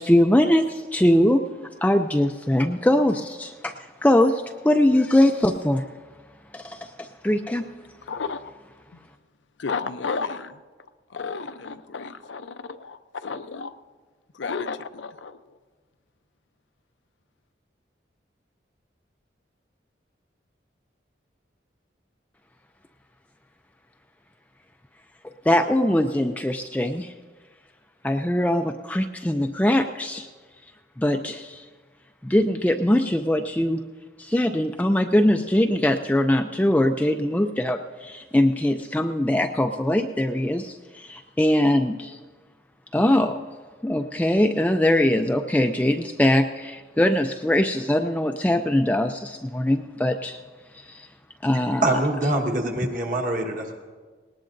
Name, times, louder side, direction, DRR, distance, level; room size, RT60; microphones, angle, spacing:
voice 1, 0.0-1.4 1.8-5.8 6.5-7.6 25.5-27.1 28.0-30.3 31.0-31.7 32.2-33.8 34.2-42.2 42.9-43.4 43.8-50.4 50.7-51.1 51.4-51.9, left 1 dB, 10° left, 0.3 m, -22 dB
voice 2, 8.0-8.4 9.6-10.6 11.1-13.7 14.3-15.4, left 4 dB, 80° left, 0.6 m, -32 dB
voice 3, 51.5-53.7, right 2 dB, 45° right, 1.4 m, -25 dB
19.0 x 19.0 x 2.6 m
head